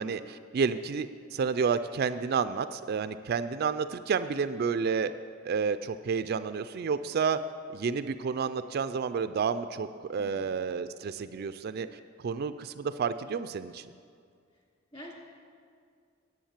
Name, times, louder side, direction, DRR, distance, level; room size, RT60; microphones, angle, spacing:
voice 1, 0.0-5.1 5.4-7.4 7.7-11.9 12.2-13.9, right 5 dB, 50° right, 12 dB, 0.3 m, -30 dB
voice 2, 10.2-10.5 14.5-14.6 14.9-15.1, left 1 dB, 30° left, -1 dB, 2.3 m, -46 dB
10.0 x 8.0 x 7.3 m, 2.2 s
head